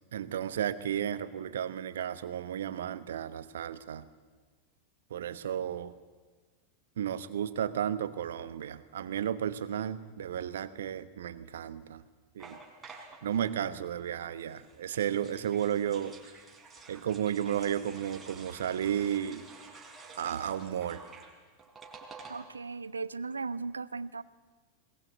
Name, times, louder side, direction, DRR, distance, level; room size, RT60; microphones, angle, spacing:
voice 1, 0.1-4.1 5.1-6.0 7.0-12.0 12.3-12.6 12.9-16.1 16.9-19.5 20.1-21.0, right 9 dB, 60° right, 15 dB, 1.1 m, -33 dB
sound 1, 12.4-13.5 14.4-22.7 23.0-23.1 23.3-23.6, right 4 dB, 15° right, 4.3 m, -51 dB
voice 2, 22.3-24.2, right 4 dB, 75° right, 19 dB, 0.6 m, -37 dB
21.5 x 20.0 x 8.1 m, 1.4 s
figure-of-eight pair, 90°, 0 cm